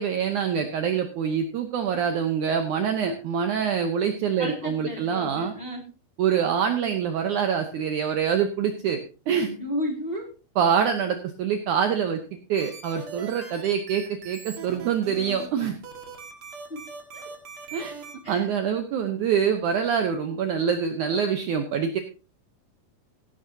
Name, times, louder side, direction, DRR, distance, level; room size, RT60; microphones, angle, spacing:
voice 1, 0.0-5.5 6.2-9.0 9.3-9.5 10.6-15.8 17.7-17.9 18.3-22.0, right 7 dB, 70° right, 6 dB, 1.9 m, -25 dB
voice 2, 4.4-5.8 9.3-10.3 16.7-16.8 17.1-17.2 18.2-18.5, equal, 20° left, 1 dB, 1.9 m, -33 dB
sound 1, 12.5-18.1, right 5 dB, 45° right, 2.2 m, -41 dB
15.0 x 12.0 x 2.8 m, 0.32 s
omnidirectional pair, 4.5 m